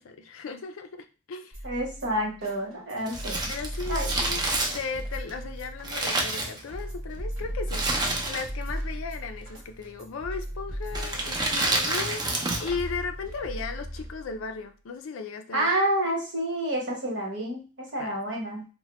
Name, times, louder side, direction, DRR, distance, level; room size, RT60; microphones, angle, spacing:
voice 1, 0.0-1.6 3.5-4.4 4.7-15.7 18.0-18.2, left 4 dB, 75° left, 8 dB, 0.4 m, -36 dB
sound 1, 1.5-14.5, equal, 90° right, 0.9 m, -37 dB
voice 2, 1.6-3.4 3.9-4.1 15.5-18.6, right 1 dB, 60° right, -2 dB, 1.1 m, -29 dB
Crumpling crinkling, 3.0-7.0 7.7-8.7 9.0-9.1 9.9-10.2 10.9-12.8 13.1-13.2, right 2 dB, 20° right, 0.5 m, -29 dB
2.9 x 2.1 x 3.0 m, 0.34 s
head